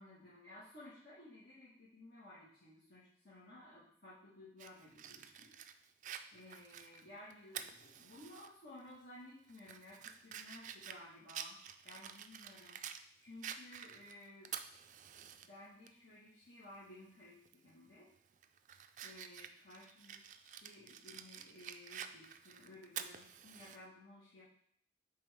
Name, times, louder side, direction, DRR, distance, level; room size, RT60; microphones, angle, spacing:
voice 1, 0.0-5.5 6.3-11.6 11.8-12.9 13.2-14.5 15.2-18.1 19.0-24.4, left 1 dB, 60° left, -10 dB, 1.7 m, -56 dB
Fire, 4.6-8.5 8.9-9.0 9.5-13.0 13.4-15.5 15.9-16.0 17.5-17.7 18.2-23.8, right 9 dB, 45° right, 0.3 m, -49 dB
8.7 x 3.5 x 3.5 m, 0.67 s
head